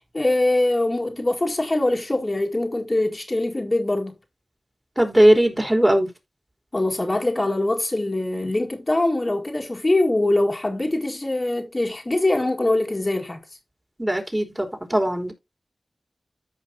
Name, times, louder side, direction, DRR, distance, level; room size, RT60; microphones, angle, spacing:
voice 1, 0.1-4.1 6.7-13.4, left 2 dB, 35° left, 1.9 m, -23 dB
voice 2, 5.0-6.1 14.0-15.3, right 1 dB, 20° right, 3.5 m, -19 dB
14.0 x 5.3 x 2.8 m
cardioid pair, 40°, 0 cm